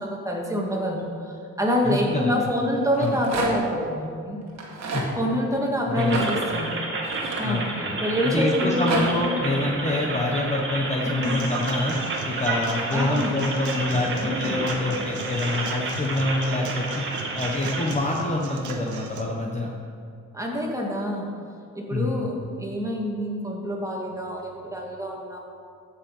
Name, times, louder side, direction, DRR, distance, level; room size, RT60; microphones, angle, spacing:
voice 1, 0.0-4.4 5.2-6.8 7.4-7.7 8.0-9.4 11.0-11.4 12.9-13.4 14.2-14.6 20.3-21.3 21.7-25.4, equal, 10° right, -1 dB, 2.3 m, -27 dB
voice 2, 1.8-2.5 3.0-3.2 4.9-5.0 6.0-6.4 7.4-8.0 8.2-12.0 12.2-17.0 17.4-19.7 21.9-22.2, left 2 dB, 25° left, -1 dB, 1.2 m, -26 dB
Rattle, 2.8-3.8 4.5-5.1 6.0-8.0 8.5-9.0, right 3 dB, 60° right, 2.0 m, -30 dB
sound 1, 6.0-17.9, right 2 dB, 40° right, 2.0 m, -31 dB
Human voice / Acoustic guitar / Drum, 11.2-19.2, right 5 dB, 75° right, 1.2 m, -38 dB
14.5 x 5.8 x 5.6 m, 2.4 s
cardioid pair, 90°, 30 cm